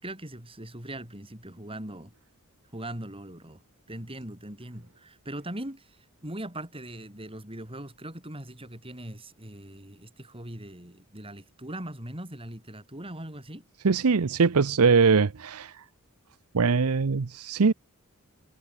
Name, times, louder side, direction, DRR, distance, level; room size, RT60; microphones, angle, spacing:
voice 1, 0.0-2.1 2.7-3.6 3.9-13.6, right 1 dB, 25° right, 6.6 m, -40 dB
voice 2, 13.8-15.8 16.5-17.7, right 5 dB, 75° right, 0.7 m, -22 dB
head